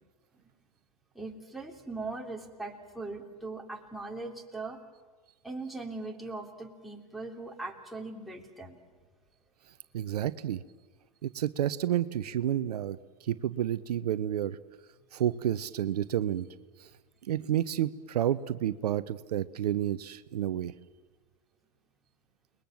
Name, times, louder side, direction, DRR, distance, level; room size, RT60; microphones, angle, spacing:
voice 1, 1.2-4.8 5.4-8.8, right 3 dB, ahead, -1 dB, 3.6 m, -40 dB
voice 2, 9.9-10.6 11.2-14.6 15.1-16.5 16.8-16.9 17.3-20.7, right 11 dB, 75° right, 14 dB, 0.9 m, -30 dB
29.0 x 21.0 x 7.7 m, 1.3 s
hypercardioid pair, 110°, 20 cm